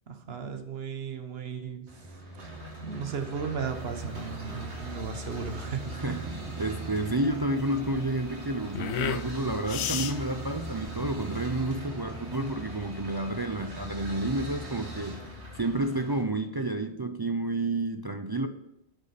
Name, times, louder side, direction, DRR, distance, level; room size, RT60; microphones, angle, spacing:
voice 1, 0.1-1.9 2.4-2.5 2.8-6.3, right 6 dB, 65° right, 6 dB, 1.3 m, -35 dB
sound 1, 1.9-16.2, right 1 dB, 90° right, 2.4 m, -40 dB
sound 2, 3.7-11.7, left 9 dB, 80° left, 0.9 m, -37 dB
voice 2, 5.9-15.2 15.6-18.5, right 2 dB, 30° right, 7 dB, 0.4 m, -30 dB
8.1 x 6.8 x 6.6 m, 0.86 s
omnidirectional pair, 1.1 m